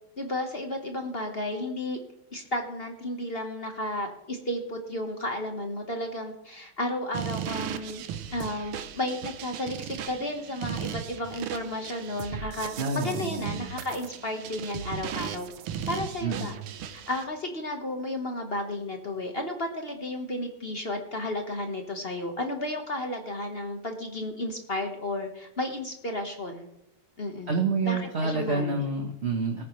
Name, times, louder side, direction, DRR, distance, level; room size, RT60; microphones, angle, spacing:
voice 1, 0.2-2.0 2.3-8.0 8.3-15.5 15.9-16.6 16.9-26.7 27.2-27.5 27.9-28.7, left 1 dB, 35° left, 4 dB, 1.2 m, -33 dB
sound 1, 7.1-17.2, right 9 dB, 80° right, 1.7 m, -37 dB
voice 2, 12.8-13.7 16.2-16.6 27.5-29.6, right 3 dB, 40° right, 2 dB, 1.0 m, -28 dB
19.0 x 9.3 x 3.2 m, 0.86 s
omnidirectional pair, 2.4 m